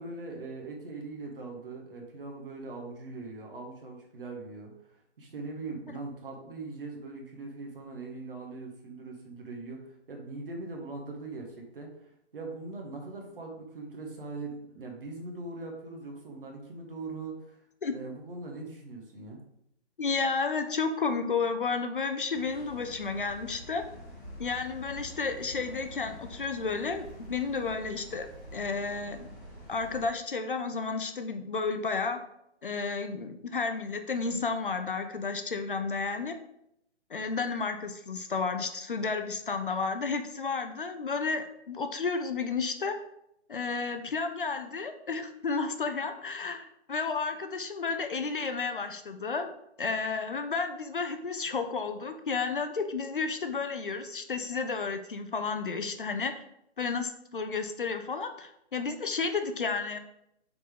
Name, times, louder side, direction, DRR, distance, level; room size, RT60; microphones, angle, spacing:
voice 1, 0.0-4.7 5.2-17.6 17.9-19.4, right 3 dB, 50° right, 1 dB, 1.5 m, -41 dB
voice 2, 20.0-23.8 24.4-29.3 29.7-32.2 32.6-36.4 37.1-43.0 43.5-49.5 49.8-56.3 56.8-60.0, left 4 dB, 50° left, 7 dB, 0.6 m, -32 dB
sound 1, 22.3-30.1, equal, 15° left, 1.0 m, -47 dB
6.6 x 4.0 x 3.7 m, 0.77 s
hypercardioid pair, 180°, 34 cm